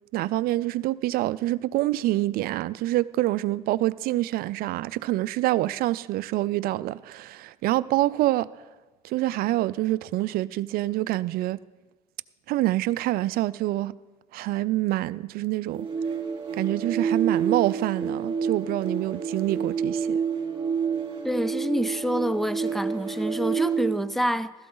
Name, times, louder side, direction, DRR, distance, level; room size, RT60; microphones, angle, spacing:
voice 1, 0.1-8.5 9.0-11.6 12.5-13.9 14.3-15.9 16.6-20.2, right 16 dB, 60° right, 0.4 m, -26 dB
sound 1, 15.7-24.1, right 6 dB, 30° right, 3.4 m, -28 dB
voice 2, 21.2-24.5, equal, ahead, 0.5 m, -27 dB
15.5 x 13.0 x 3.9 m
supercardioid pair, 85°, 17 cm